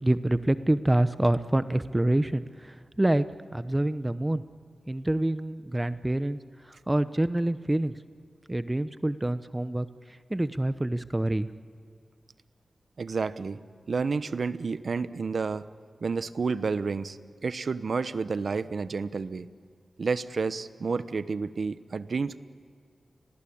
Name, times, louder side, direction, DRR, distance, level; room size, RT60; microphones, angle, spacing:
voice 1, 0.0-3.2 3.5-4.4 4.9-6.4 6.7-7.9 8.5-9.9 10.3-11.5, right 1 dB, 15° right, 13 dB, 0.9 m, -26 dB
voice 2, 13.0-13.6 13.9-15.6 16.0-19.5 20.0-22.4, right 4 dB, 70° right, 13 dB, 1.0 m, -30 dB
30.0 x 22.0 x 8.7 m, 2.2 s
wide cardioid pair, 75°, 0 cm